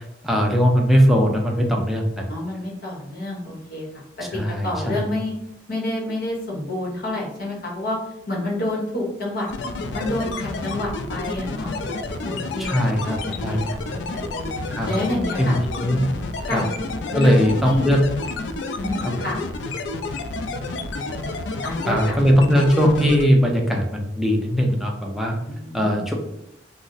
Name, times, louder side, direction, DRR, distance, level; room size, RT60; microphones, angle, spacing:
voice 1, 0.2-2.3 4.2-5.1 12.6-13.6 14.7-14.9 15.4-16.0 16.5-16.6 17.1-18.0 19.0-19.1 21.9-25.3 25.7-26.1, equal, ahead, 0 dB, 0.4 m, -19 dB
voice 2, 2.3-4.0 4.3-5.3 5.7-8.0 8.3-9.5 9.9-11.7 12.2-14.5 14.9-15.5 16.4-16.7 17.1-17.4 17.6-17.9 18.8-19.4 21.6-22.2 25.4-26.0, left 1 dB, 55° left, -3 dB, 1.0 m, -29 dB
sound 1, 9.5-23.3, left 3 dB, 75° left, 0.3 m, -30 dB
2.5 x 2.0 x 3.9 m, 0.77 s
head